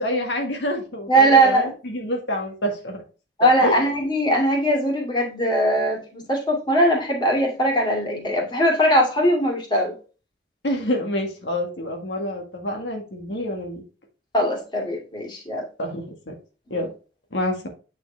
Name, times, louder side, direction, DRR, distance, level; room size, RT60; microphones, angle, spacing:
voice 1, 0.0-3.0 3.6-3.8 10.6-13.8 15.8-16.3 16.7-16.9 17.3-17.7, left 1 dB, 85° left, 2 dB, 1.7 m, -27 dB
voice 2, 1.1-1.7 3.4-9.9 14.3-15.6 16.7-16.8, right 1 dB, 25° left, -1 dB, 2.4 m, -20 dB
9.1 x 4.6 x 3.3 m, 0.34 s
head